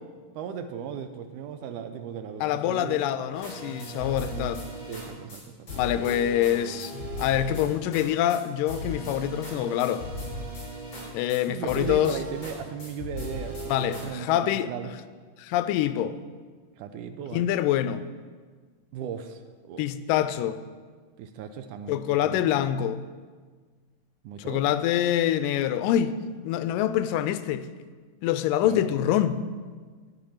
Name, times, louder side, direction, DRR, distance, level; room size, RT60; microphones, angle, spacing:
voice 1, 0.3-3.0 4.4-4.5 4.9-5.5 11.5-13.7 14.0-14.9 16.8-17.5 18.9-19.9 21.2-22.5 24.2-24.6 28.6-28.8, right 7 dB, 75° right, 2.1 m, -37 dB
voice 2, 2.4-4.6 5.8-10.0 11.1-12.2 13.7-14.7 15.4-16.2 17.3-18.1 19.8-20.6 21.9-23.0 24.4-26.2 26.4-27.7 28.2-29.4, left 11 dB, 85° left, 2.2 m, -25 dB
sound 1, 3.3-5.0 5.3-5.4 5.7-8.0 8.3-8.4 8.7-11.4 11.7-12.5 12.8-14.0, equal, 35° left, 5.4 m, -37 dB
12.0 x 10.5 x 5.6 m
omnidirectional pair, 3.9 m